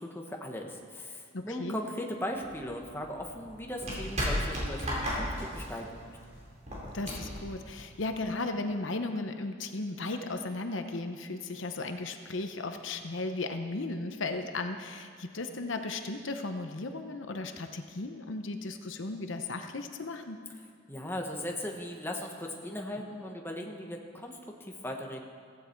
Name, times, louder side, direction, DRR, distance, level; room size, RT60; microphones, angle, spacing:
voice 1, 0.0-6.2 20.9-25.2, left 1 dB, 10° left, 1 dB, 1.3 m, -38 dB
voice 2, 1.3-1.8 6.9-20.4, left 2 dB, 65° left, 6 dB, 0.9 m, -36 dB
sound 1, 2.3-8.3, equal, 35° right, 4.5 m, -35 dB
15.5 x 15.5 x 4.6 m, 2.1 s
head